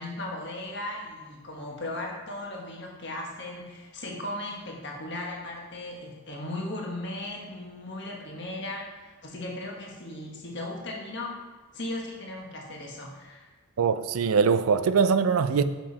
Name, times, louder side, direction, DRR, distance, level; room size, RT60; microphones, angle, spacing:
voice 1, 0.0-11.4 11.7-13.5, left 1 dB, 55° left, 1.5 m, -37 dB
voice 2, 13.8-15.6, right 5 dB, 90° right, 0.4 m, -22 dB
7.0 x 6.0 x 4.1 m
head